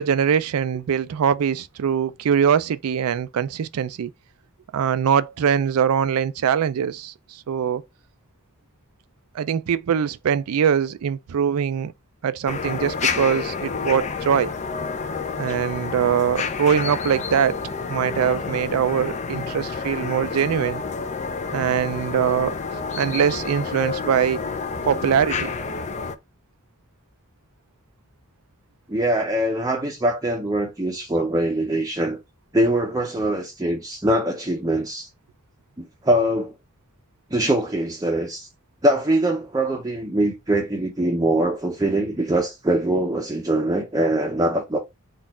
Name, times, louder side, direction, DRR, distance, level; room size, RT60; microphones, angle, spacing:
voice 1, 0.0-4.1 4.7-7.8 9.3-11.9 12.2-14.5 15.4-17.6 17.9-20.8 21.5-22.5 22.9-24.4 24.8-25.5, right 8 dB, 75° right, 0.4 m, -22 dB
sound 1, 12.5-26.1, left 5 dB, 30° left, 0.5 m, -29 dB
voice 2, 28.9-32.2 32.5-35.1 35.8-36.5 37.3-38.5 38.8-44.8, right 1 dB, 15° right, 0.6 m, -23 dB
4.2 x 2.4 x 4.2 m
head